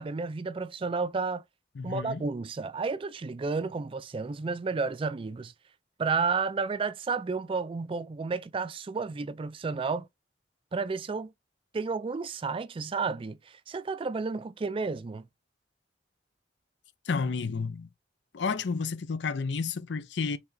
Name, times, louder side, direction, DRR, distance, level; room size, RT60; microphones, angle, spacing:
voice 1, 0.0-1.4 1.8-5.5 6.0-10.1 10.7-11.3 11.7-15.3, right 4 dB, 30° right, 0.3 m, -31 dB
voice 2, 1.8-2.3 17.1-17.9 18.3-20.4, left 5 dB, 70° left, 0.5 m, -31 dB
4.8 x 3.4 x 2.6 m
head